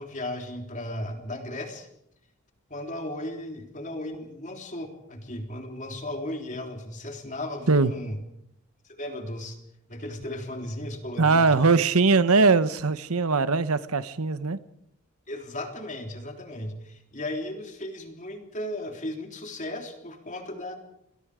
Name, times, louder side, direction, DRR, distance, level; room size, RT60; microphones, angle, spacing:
voice 1, 0.0-1.9 2.7-8.2 8.8-9.6 9.9-11.8 15.3-20.8, left 1 dB, 35° left, 3.6 m, -36 dB
voice 2, 11.2-14.6, right 4 dB, 90° right, 1.0 m, -21 dB
29.0 x 21.5 x 5.0 m
head